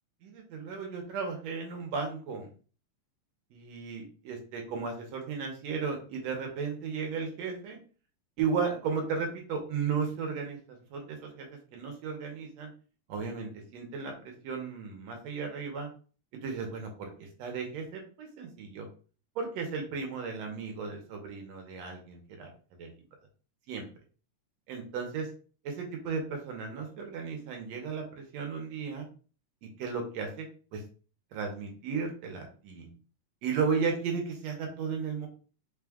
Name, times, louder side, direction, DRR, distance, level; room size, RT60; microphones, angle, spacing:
voice 1, 0.2-2.5 3.5-7.8 8.4-12.7 13.1-15.9 16.4-17.1 17.4-18.9 19.4-22.5 22.8-22.9 23.7-23.9 24.7-25.3 25.6-29.1 29.6-30.5 30.7-30.8 31.3-32.9 33.4-35.3, right 5 dB, 70° right, 2 dB, 2.0 m, -35 dB
5.3 x 2.4 x 3.5 m, 0.39 s
omnidirectional pair, 3.4 m